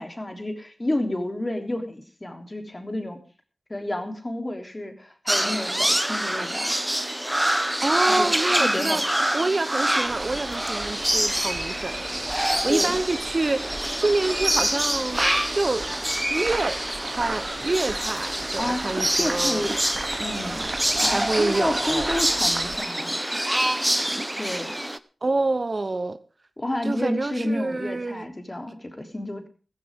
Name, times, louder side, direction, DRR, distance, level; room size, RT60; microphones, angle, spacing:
voice 1, 0.0-3.2 3.7-6.7 8.1-9.2 12.7-12.9 18.6-18.9 19.2-19.8 20.2-20.6 21.0-23.4 24.4-24.7 26.6-29.5, left 1 dB, 30° left, 3.4 m, -30 dB
sound 1, 5.3-25.0, right 1 dB, 10° right, 0.9 m, -26 dB
voice 2, 7.8-9.0 9.3-13.6 14.0-15.2 15.5-15.9 16.3-19.7 21.1-22.1 25.2-26.2 26.8-28.3, right 2 dB, 50° right, 1.0 m, -27 dB
sound 2, 10.0-22.8, right 3 dB, 65° right, 2.6 m, -36 dB
15.5 x 15.0 x 3.7 m
wide cardioid pair, 70°, 0 cm